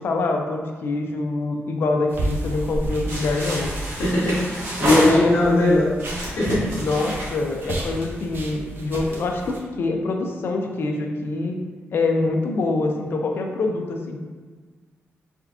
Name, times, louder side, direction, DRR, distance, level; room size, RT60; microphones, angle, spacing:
voice 1, 0.0-3.7 4.8-5.8 6.8-11.6 11.9-14.2, left 3 dB, 55° left, 3 dB, 0.4 m, -25 dB
sound 1, 2.1-9.6, right 1 dB, 50° right, 0.6 m, -33 dB
sound 2, 3.1-5.6 6.0-8.2, equal, 85° right, 1.3 m, -29 dB
voice 2, 3.8-6.0 6.2-6.7, left 1 dB, 80° left, -9 dB, 0.9 m, -20 dB
3.6 x 3.5 x 2.3 m, 1.4 s
wide cardioid pair, 155°, 5 cm